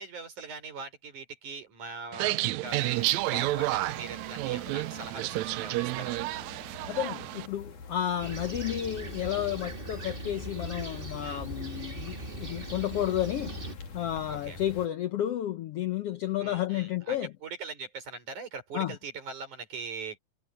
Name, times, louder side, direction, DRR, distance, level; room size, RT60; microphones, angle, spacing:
voice 1, 0.0-6.1 11.2-11.5 14.3-14.6 16.4-20.2, right 4 dB, 65° right, 6.8 m, -41 dB
sound 1, 2.1-7.5, right 18 dB, 85° right, 1.6 m, -30 dB
sound 2, 2.7-14.9, left 4 dB, 65° left, 4.8 m, -47 dB
voice 2, 6.9-13.6 13.9-17.3 18.7-18.9, left 11 dB, 90° left, 1.3 m, -31 dB
Fixed-wing aircraft airplane, 8.2-13.7, right 2 dB, 25° right, 1.4 m, -40 dB
omnidirectional pair, 3.8 m